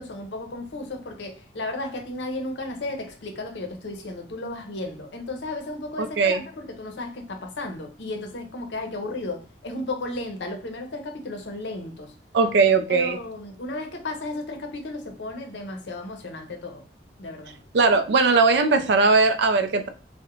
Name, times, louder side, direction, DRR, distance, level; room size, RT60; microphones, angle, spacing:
voice 1, 0.0-12.1 12.9-16.8 17.2-17.6, left 2 dB, 75° left, 0.6 m, -34 dB
voice 2, 6.0-6.4 12.3-13.2 17.7-19.9, right 4 dB, 70° right, 0.4 m, -19 dB
2.4 x 2.1 x 2.9 m
head